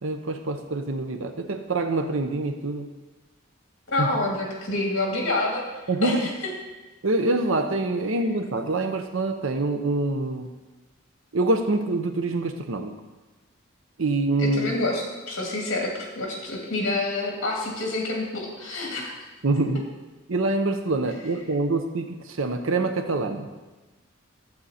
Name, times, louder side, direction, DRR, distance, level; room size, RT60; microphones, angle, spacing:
voice 1, 0.0-2.9 4.0-4.1 5.9-6.3 7.0-10.5 11.3-12.9 14.0-14.7 19.4-19.8 20.3-23.5, right 2 dB, 75° right, 6 dB, 0.8 m, -25 dB
voice 2, 3.9-5.6 6.0-6.3 14.4-19.2, left 2 dB, 60° left, -1 dB, 2.2 m, -27 dB
14.0 x 7.9 x 4.2 m, 1.2 s
head